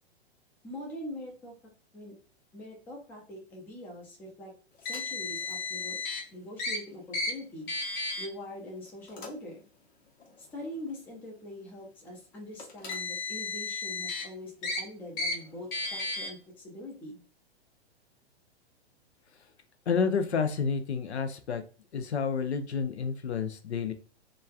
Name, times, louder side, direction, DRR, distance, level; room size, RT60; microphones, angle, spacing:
voice 1, 0.6-1.5 1.9-2.1 2.5-4.5 4.8-6.0 6.3-7.7 8.2-9.6 10.4-17.2, left 1 dB, 5° left, -1 dB, 0.3 m, -43 dB
Car, 4.8-6.2 6.6-6.8 7.1-7.3 7.7-8.3 9.1-9.3 10.2-10.3 12.6-14.2 14.6-14.8 15.2-15.3 15.7-16.3, left 3 dB, 40° left, 0.9 m, -33 dB
voice 2, 19.9-21.6 21.9-23.9, left 5 dB, 80° left, 8 dB, 0.5 m, -29 dB
3.0 x 2.4 x 2.3 m, 0.37 s
figure-of-eight pair, 110°, 33 cm